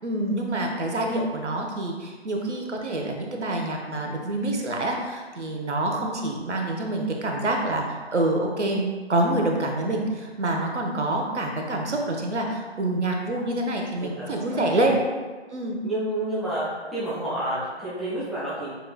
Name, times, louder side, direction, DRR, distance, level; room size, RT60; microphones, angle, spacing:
voice 1, 0.0-15.0 15.5-15.8, right 1 dB, 80° right, 1 dB, 1.0 m, -26 dB
voice 2, 14.0-14.9 15.8-16.6 16.9-18.7, right 1 dB, ahead, -11 dB, 0.5 m, -30 dB
6.8 x 3.3 x 2.2 m, 1.5 s
figure-of-eight pair, 180°, 34 cm